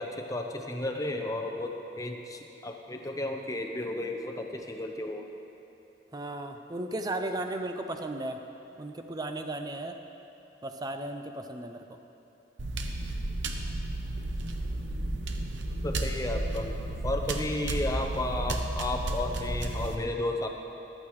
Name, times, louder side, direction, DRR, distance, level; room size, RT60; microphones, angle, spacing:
voice 1, 0.0-5.3 15.8-16.7 17.0-20.5, left 1 dB, 20° left, 3 dB, 0.7 m, -33 dB
voice 2, 6.1-8.4 8.8-10.0 10.6-11.9, right 2 dB, 20° right, 6 dB, 0.5 m, -35 dB
sound 1, 12.6-20.0, right 1 dB, 90° right, 0.8 m, -32 dB
14.0 x 12.0 x 3.2 m, 2.9 s
head